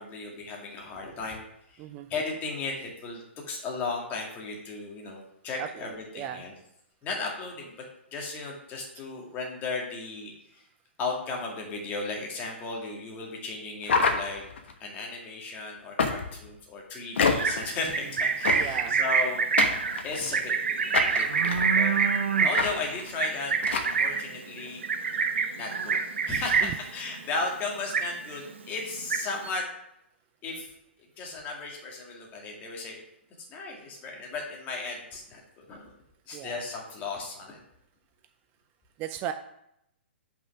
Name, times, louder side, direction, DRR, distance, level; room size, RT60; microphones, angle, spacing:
voice 1, 0.0-6.5 7.0-7.8 8.1-10.7 11.0-14.4 14.8-19.4 20.0-22.0 22.4-24.8 25.6-26.0 26.3-29.7 30.4-30.7 31.2-33.0 33.5-35.9 36.3-37.6, left 3 dB, 25° left, -1 dB, 2.1 m, -35 dB
voice 2, 5.6-6.4 18.5-19.0 26.6-26.7 36.3-36.6 39.0-39.3, right 11 dB, 30° right, 8 dB, 0.4 m, -36 dB
sound 1, 13.8-14.7 16.0-16.5 17.2-17.6 18.4-18.9 19.6-20.4 20.9-21.7 22.6-22.7 23.0-23.1 23.6-23.9, left 4 dB, 65° left, 1.1 m, -27 dB
Livestock farm animals working animals, 17.3-26.9 27.2-27.5 27.8-28.5 28.8-29.5, right 5 dB, 75° right, 0.9 m, -26 dB
5.7 x 5.5 x 5.8 m, 0.78 s
hypercardioid pair, 130°, 7 cm